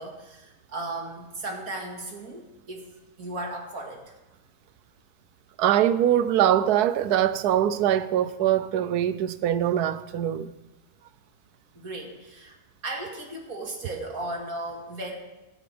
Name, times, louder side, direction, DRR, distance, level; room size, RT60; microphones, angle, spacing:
voice 1, 0.0-2.9 3.2-4.1 11.7-12.6 12.8-15.1, right 2 dB, 65° right, 2.4 m, -36 dB
voice 2, 5.6-10.5, right 11 dB, 90° right, 1.2 m, -23 dB
15.5 x 13.0 x 3.4 m
omnidirectional pair, 1.6 m